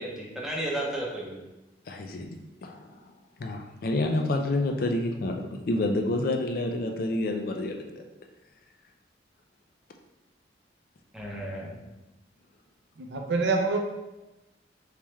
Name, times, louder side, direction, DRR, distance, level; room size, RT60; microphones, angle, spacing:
voice 1, 0.0-1.4 7.7-7.8 11.1-11.8, right 1 dB, 5° right, -4 dB, 0.6 m, -33 dB
voice 2, 1.9-2.4 2.6-3.0 3.4-8.0, left 2 dB, 50° left, 3 dB, 0.4 m, -28 dB
voice 3, 13.0-13.8, right 3 dB, 70° right, 3 dB, 0.5 m, -26 dB
3.4 x 3.3 x 3.1 m, 1.0 s
head